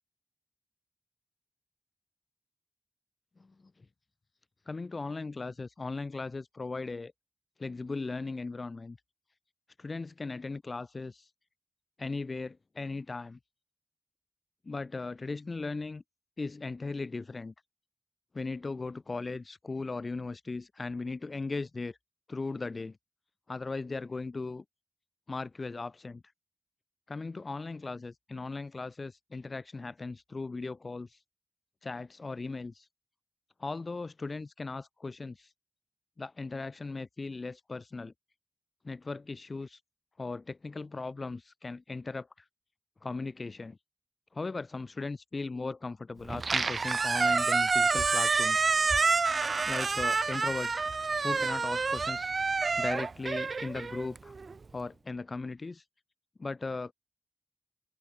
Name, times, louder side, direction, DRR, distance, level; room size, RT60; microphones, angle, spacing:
voice 1, 4.7-7.1 7.6-9.0 9.8-11.3 12.0-13.4 14.6-16.0 16.4-17.5 18.3-22.0 22.3-23.0 23.5-24.6 25.3-26.2 27.1-31.2 31.8-32.9 33.6-35.5 36.2-38.1 38.8-39.8 40.2-42.4 43.0-43.8 44.3-48.7 49.7-50.9 51.2-54.3 54.7-55.8 56.4-56.9, left 3 dB, 60° left, 3.0 m, -38 dB
Squeak, 46.3-54.5, right 4 dB, 90° right, 0.6 m, -28 dB
open air
wide cardioid pair, 85°, 0 cm